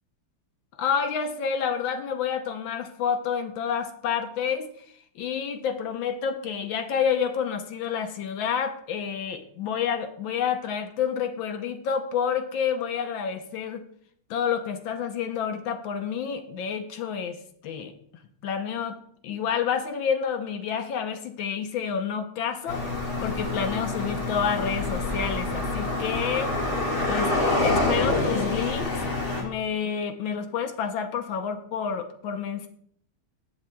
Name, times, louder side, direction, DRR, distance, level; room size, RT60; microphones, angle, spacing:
voice 1, 0.8-4.7 5.1-13.8 14.3-17.4 17.6-17.9 18.4-19.0 19.2-26.6 27.1-27.3 27.6-29.0 29.4-32.7, left 7 dB, 75° left, 7 dB, 1.5 m, -29 dB
sound 1, 22.7-29.4, left 2 dB, 50° left, 2.4 m, -27 dB
15.5 x 6.6 x 2.3 m, 0.64 s
omnidirectional pair, 2.3 m